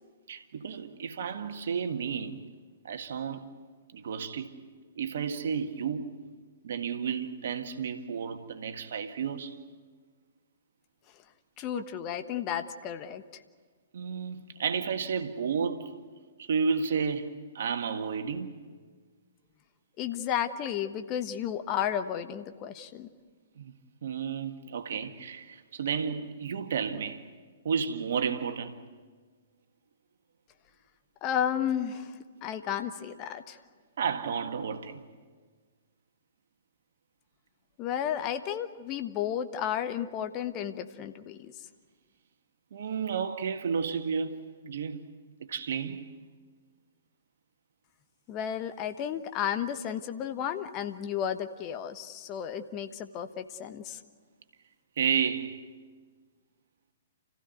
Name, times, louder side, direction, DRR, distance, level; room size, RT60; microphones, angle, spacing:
voice 1, 0.3-2.4 2.8-3.5 3.9-4.7 5.0-6.1 6.6-9.6 11.7-11.8 13.9-15.9 16.4-18.5 23.6-23.7 24.0-27.2 27.6-28.7 34.0-35.0 42.7-44.4 44.6-45.0 45.4-46.1 55.0-55.6, right 6 dB, 60° right, 1.8 m, -32 dB
voice 2, 11.6-13.2 20.0-23.1 31.2-32.1 32.4-33.6 37.8-41.5 48.3-54.0, left 9 dB, 30° left, 1.2 m, -33 dB
29.5 x 15.5 x 9.4 m
figure-of-eight pair, 115°, 0 cm